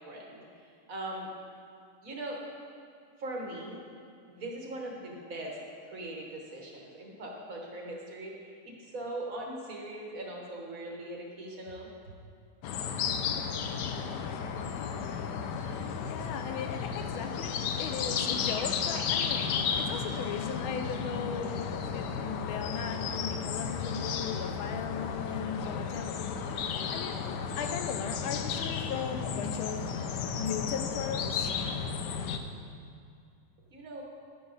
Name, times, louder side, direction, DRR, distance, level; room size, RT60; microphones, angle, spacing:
voice 1, 0.1-1.3 2.0-2.4 3.2-3.8 4.3-5.6 5.9-11.9 33.7-34.0, right 1 dB, 45° right, -1 dB, 1.5 m, -40 dB
sound 1, 12.6-32.4, left 6 dB, 70° left, 1.1 m, -33 dB
voice 2, 15.7-26.3 26.7-27.2 27.6-29.8 30.4-31.5, left 6 dB, 85° left, 6 dB, 1.6 m, -37 dB
10.5 x 9.8 x 4.0 m, 2.4 s
omnidirectional pair, 2.2 m